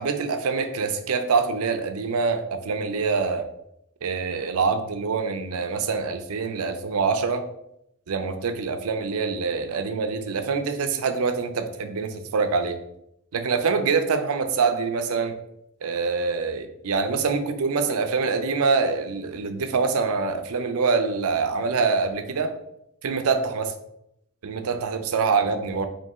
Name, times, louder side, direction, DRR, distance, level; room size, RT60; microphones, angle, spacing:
voice 1, 0.0-3.5 4.0-7.4 8.1-12.8 13.3-15.3 15.8-22.5 23.0-23.7 24.4-25.9, right 4 dB, 70° right, 7 dB, 0.5 m, -25 dB
4.0 x 2.7 x 3.5 m, 0.79 s
head